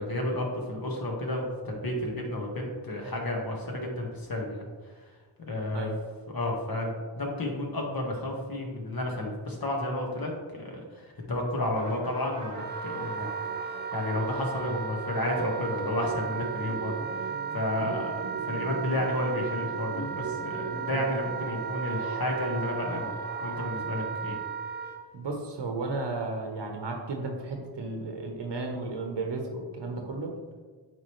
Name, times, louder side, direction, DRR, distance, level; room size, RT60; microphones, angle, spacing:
voice 1, 0.0-4.6 5.4-5.9 6.3-10.9 11.3-13.3 13.9-17.3 17.5-24.4, left 1 dB, 50° left, 0 dB, 1.7 m, -31 dB
sound 1, 11.8-24.3, right 3 dB, 40° right, 1.1 m, -40 dB
Wind instrument woodwind instrument, 12.5-25.0, right 7 dB, 20° right, 0.6 m, -35 dB
voice 2, 25.1-30.3, right 3 dB, 60° right, 2 dB, 1.1 m, -34 dB
8.8 x 3.7 x 3.2 m, 1.4 s
cardioid pair, 55°, 47 cm